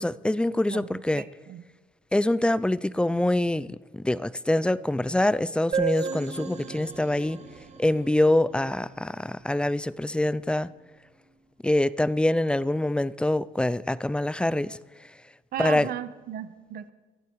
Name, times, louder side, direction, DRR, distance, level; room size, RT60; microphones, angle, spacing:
voice 1, 0.0-1.2 2.1-3.7 3.9-7.4 7.8-10.7 11.6-14.8 15.6-15.9, left 1 dB, 5° left, 0.4 m, -25 dB
voice 2, 0.7-1.6 15.5-16.9, right 10 dB, 65° right, 1.1 m, -36 dB
sound 1, 5.7-9.3, right 6 dB, 40° right, 1.5 m, -34 dB
24.5 x 8.4 x 4.7 m
cardioid pair, 110°, 17 cm